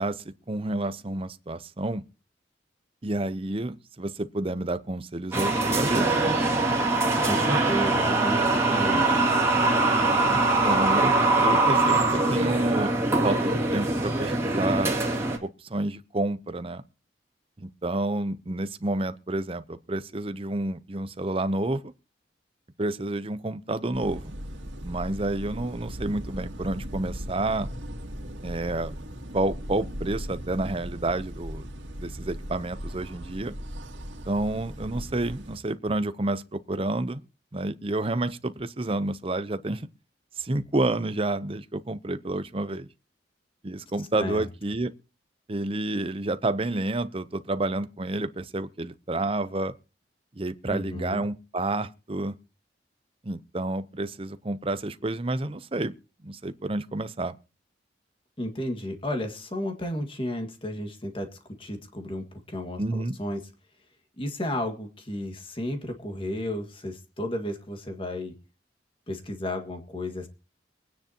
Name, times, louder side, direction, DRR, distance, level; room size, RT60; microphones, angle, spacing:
voice 1, 0.0-2.0 3.0-6.2 10.3-10.4 10.6-13.0 13.2-15.0 15.4-16.8 17.6-21.9 22.8-24.3 24.8-27.7 28.4-28.9 29.3-31.7 32.0-33.5 34.3-37.2 37.5-39.9 40.4-42.9 43.6-44.9 45.5-49.7 50.4-52.4 53.2-55.9 56.2-57.4 62.8-63.1, right 2 dB, 30° right, 0.7 m, -29 dB
sound 1, 5.3-15.4, right 2 dB, 15° right, 2.4 m, -23 dB
voice 2, 7.2-9.2 44.2-44.5 50.7-51.3 58.4-63.4 64.2-68.3 69.1-70.3, left 1 dB, 30° left, 1.9 m, -33 dB
sound 2, 23.9-35.6, equal, 90° right, 2.2 m, -38 dB
24.0 x 9.6 x 2.9 m
head